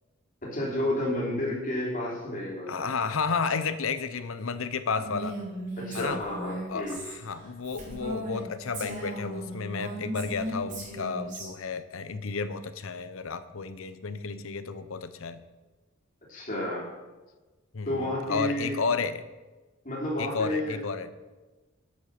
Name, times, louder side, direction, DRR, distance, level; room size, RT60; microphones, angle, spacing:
voice 1, 0.4-2.8 5.8-7.0 16.3-16.9 17.8-18.8 19.8-20.8, left 1 dB, 40° left, -4 dB, 3.3 m, -31 dB
voice 2, 2.7-5.4 5.9-6.2 6.7-15.4 17.7-19.2 20.2-21.1, left 5 dB, 70° left, 12 dB, 0.7 m, -32 dB
Female speech woman speaking, 5.0-8.4 8.7-11.5, right 1 dB, 40° right, 3.2 m, -37 dB
8.8 x 8.3 x 5.9 m, 1.2 s
head